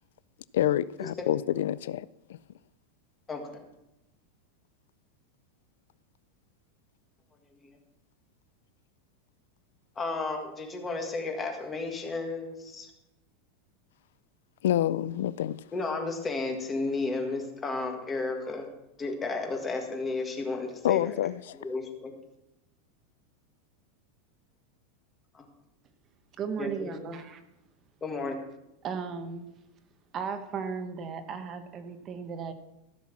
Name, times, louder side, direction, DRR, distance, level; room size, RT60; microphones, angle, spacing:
voice 1, 0.5-2.4 14.6-15.6 20.8-21.6, left 12 dB, 85° left, 0.4 m, -27 dB
voice 2, 3.3-3.6 7.6-7.8 10.0-12.9 15.7-18.7 19.0-21.1 21.6-22.1 25.3-25.5 26.6-27.1 28.0-28.4, left 3 dB, 15° left, 1.8 m, -33 dB
voice 3, 26.4-27.4 28.8-29.5 30.1-32.5, right 6 dB, 25° right, 1.0 m, -35 dB
15.0 x 6.2 x 7.3 m
supercardioid pair, 165°, 0 cm